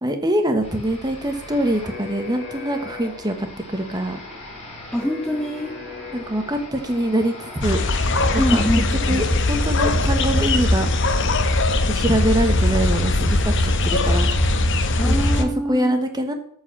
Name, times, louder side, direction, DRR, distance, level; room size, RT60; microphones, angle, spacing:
voice 1, 0.0-4.2 6.1-7.8 8.3-8.6 9.1-10.9 11.9-14.3 15.0-16.3, right 1 dB, 20° right, 6 dB, 1.2 m, -24 dB
sound 1, 0.6-9.3, left 3 dB, 30° left, 4.3 m, -37 dB
voice 2, 4.9-5.8 8.4-9.2 15.0-16.0, equal, 5° left, 3 dB, 0.7 m, -24 dB
sound 2, 7.6-15.4, left 2 dB, 55° left, 1.0 m, -20 dB
13.0 x 4.8 x 7.3 m, 0.71 s
head